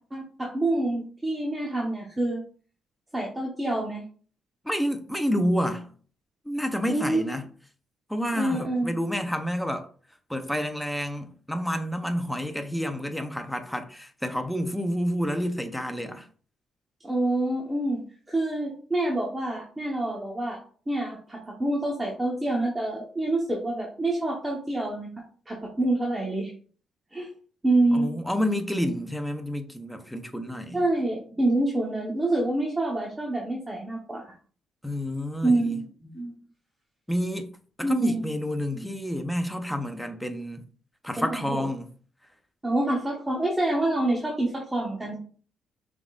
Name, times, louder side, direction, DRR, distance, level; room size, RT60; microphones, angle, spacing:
voice 1, 0.1-2.4 3.1-4.0 6.9-7.2 8.3-8.9 17.0-18.0 18.3-20.6 20.9-25.1 25.5-26.5 27.1-27.3 27.6-28.1 30.7-34.3 35.4-35.9 36.1-36.4 37.8-38.3 38.7-38.9 41.2-41.7 42.6-45.2, right 2 dB, 15° right, 1.0 m, -27 dB
voice 2, 4.6-5.9 6.5-7.5 8.1-9.9 10.3-16.3 27.9-30.8 34.8-35.7 37.1-40.6 41.0-41.9, equal, 5° left, 0.7 m, -29 dB
6.0 x 3.6 x 2.5 m
cardioid pair, 90°, 0 cm